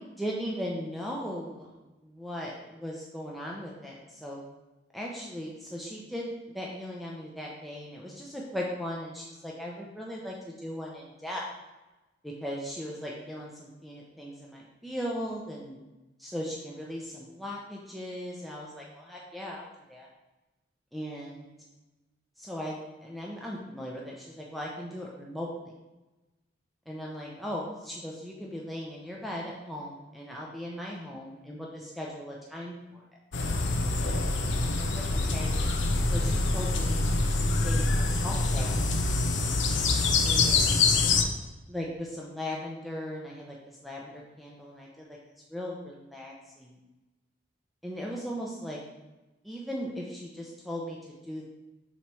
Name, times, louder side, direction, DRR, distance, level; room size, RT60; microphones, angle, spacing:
voice 1, 0.0-1.7 2.0-4.4 4.9-11.4 12.2-15.8 16.2-20.1 20.9-21.5 22.4-25.5 26.9-33.0 34.7-35.5 36.0-37.0 37.6-38.8 40.2-40.9 41.7-43.6 43.8-45.1 45.5-46.8 47.8-48.8 49.4-51.4, equal, ahead, -3 dB, 0.6 m, -38 dB
sound 1, 33.3-41.2, left 3 dB, 75° left, 0.7 m, -25 dB
7.1 x 3.1 x 4.7 m, 1.1 s
head